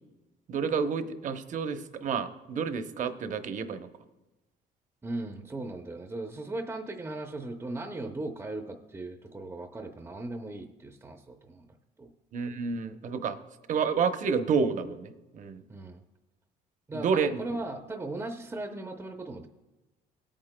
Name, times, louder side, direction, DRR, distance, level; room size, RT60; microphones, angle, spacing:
voice 1, 0.5-3.9 12.3-13.4 13.7-15.6 16.9-17.4, right 5 dB, 50° right, 9 dB, 0.8 m, -29 dB
voice 2, 5.0-12.1 15.7-16.0 16.9-19.5, right 2 dB, 15° right, 5 dB, 0.6 m, -38 dB
18.5 x 8.9 x 2.2 m, 1.1 s
cardioid pair, 110°, 17 cm